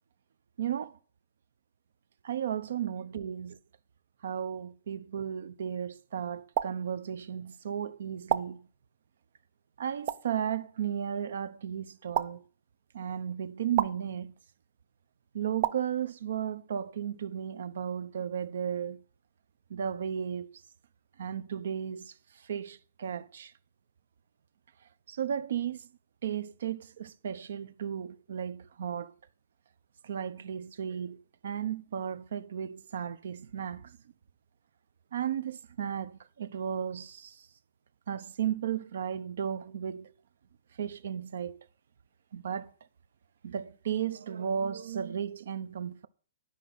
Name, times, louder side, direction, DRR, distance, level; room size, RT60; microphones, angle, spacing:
voice 1, 0.6-1.0 2.2-3.6 4.2-8.7 9.8-12.4 12.9-14.3 15.3-19.0 19.7-20.5 21.2-23.5 25.1-25.9 26.2-29.1 30.0-34.0 35.1-37.5 38.1-40.1 40.8-41.6 42.3-42.7 43.4-46.1, right 8 dB, 70° right, 0.7 m, -34 dB
sound 1, 6.5-6.7 8.3-8.4 10.1-10.2 12.1-12.3 13.7-13.9 15.6-15.8, right 10 dB, 35° right, 0.5 m, -27 dB
12.0 x 5.3 x 7.9 m
hypercardioid pair, 170°, 0 cm